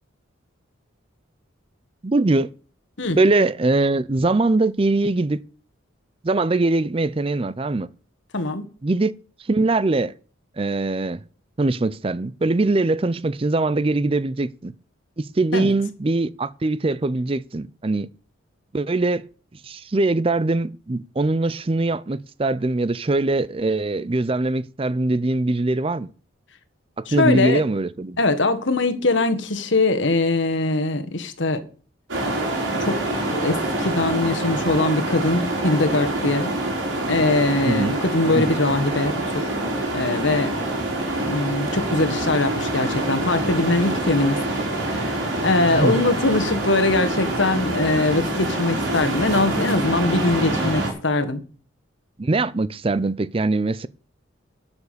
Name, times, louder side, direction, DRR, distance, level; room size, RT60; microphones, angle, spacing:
voice 1, 2.0-2.5 3.2-5.4 6.2-7.9 8.8-9.1 9.4-10.1 10.6-11.2 11.6-14.7 15.2-18.1 18.7-19.2 19.6-26.1 27.0-28.2 37.6-37.9 38.3-38.6 45.7-45.9 52.2-53.9, right 2 dB, 30° right, 0.5 m, -22 dB
voice 2, 8.3-8.6 15.5-15.7 27.1-27.6 28.2-31.6 32.8-36.5 37.1-39.4 39.9-40.5 41.2-44.4 44.9-51.4, left 2 dB, 65° left, 1.5 m, -22 dB
sound 1, 32.1-50.9, right 1 dB, 70° right, 4.2 m, -26 dB
11.0 x 7.1 x 6.8 m
head